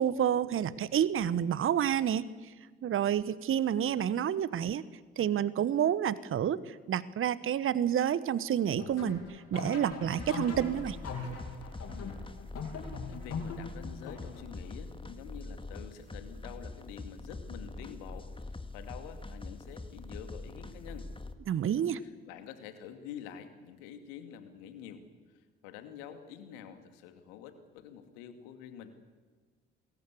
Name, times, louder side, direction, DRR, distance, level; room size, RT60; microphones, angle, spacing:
voice 1, 0.0-2.3 2.8-4.8 5.2-11.0 21.5-22.0, right 9 dB, 45° right, 18 dB, 1.1 m, -29 dB
sound 1, 8.8-14.7, left 4 dB, 55° left, 6.9 m, -41 dB
sound 2, 10.2-21.3, left 2 dB, 15° left, 2.1 m, -44 dB
voice 2, 11.9-12.2 13.1-21.1 22.0-28.9, left 9 dB, 70° left, 8 dB, 2.5 m, -47 dB
27.5 x 21.5 x 8.4 m, 1.4 s
figure-of-eight pair, 45°, 30 cm